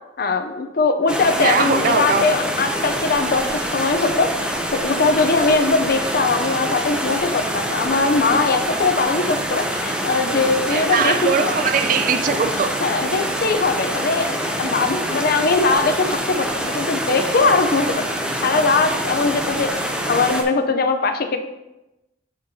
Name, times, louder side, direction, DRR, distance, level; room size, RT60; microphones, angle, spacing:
voice 1, 0.2-11.5 12.8-18.0 18.4-21.4, left 3 dB, 55° left, 7 dB, 0.6 m, -20 dB
sound 1, 1.1-20.4, equal, 5° right, 0.6 m, -25 dB
voice 2, 1.4-2.4 10.7-12.7, right 6 dB, 50° right, 8 dB, 0.4 m, -20 dB
9.5 x 4.4 x 2.7 m, 0.98 s
head